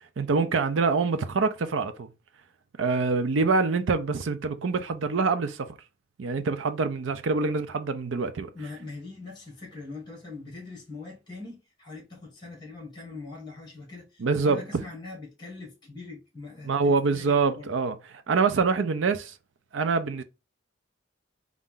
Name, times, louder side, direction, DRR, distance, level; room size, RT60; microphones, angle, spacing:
voice 1, 0.2-2.1 2.8-5.7 6.2-8.5 14.2-14.6 16.7-19.3 19.7-20.2, right 4 dB, 85° right, 0.5 m, -25 dB
voice 2, 8.5-17.7, left 3 dB, 25° left, 1.7 m, -42 dB
4.1 x 2.5 x 3.7 m
head